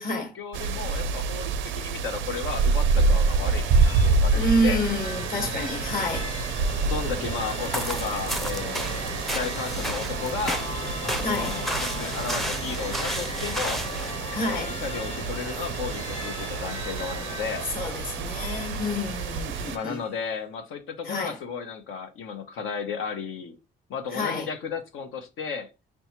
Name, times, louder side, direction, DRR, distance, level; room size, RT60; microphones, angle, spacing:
voice 1, 0.0-4.8 6.9-10.7 11.0-13.8 14.4-17.7 19.7-23.6 23.9-25.7, left 6 dB, 85° left, 0.9 m, -34 dB
sound 1, 0.5-19.8, right 4 dB, 75° right, 0.5 m, -28 dB
sound 2, 2.2-20.4, left 2 dB, 30° left, 0.8 m, -38 dB
voice 2, 4.3-6.3 11.2-11.6 14.3-14.7 17.7-20.0 21.0-21.4 24.1-24.5, left 1 dB, 45° left, 1.2 m, -28 dB
sound 3, 7.5-14.1, equal, ahead, 0.5 m, -33 dB
5.2 x 2.3 x 2.9 m
cardioid pair, 90°, 20 cm